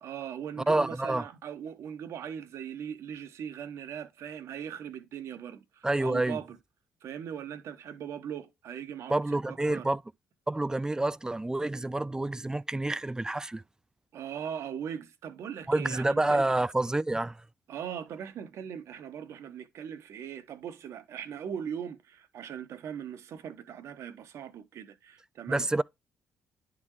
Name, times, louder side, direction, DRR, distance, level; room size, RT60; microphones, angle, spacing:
voice 1, 0.0-6.6 7.0-9.9 14.1-16.5 17.7-25.7, right 8 dB, 60° right, 0.9 m, -40 dB
voice 2, 0.7-1.3 5.8-6.4 9.1-10.0 10.5-13.6 15.7-17.4 25.5-25.8, right 2 dB, 10° right, 0.3 m, -28 dB
10.5 x 3.9 x 3.0 m
hypercardioid pair, 45°, 5 cm